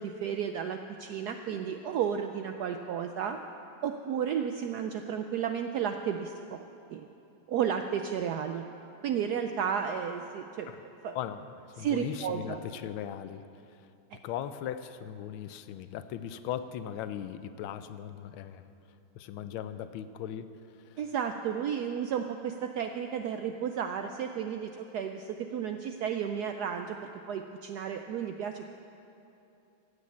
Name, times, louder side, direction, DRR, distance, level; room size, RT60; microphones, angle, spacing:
voice 1, 0.0-3.4 3.8-6.6 6.9-7.1 7.5-8.6 9.0-10.7 11.0-11.2 11.8-12.6 21.0-28.7, right 8 dB, 80° right, 6 dB, 0.9 m, -33 dB
voice 2, 11.1-11.5 11.8-13.4 14.2-18.7 19.2-20.5 20.9-21.0, left 10 dB, 90° left, 12 dB, 1.4 m, -38 dB
15.5 x 6.5 x 8.4 m, 2.7 s
omnidirectional pair, 2.2 m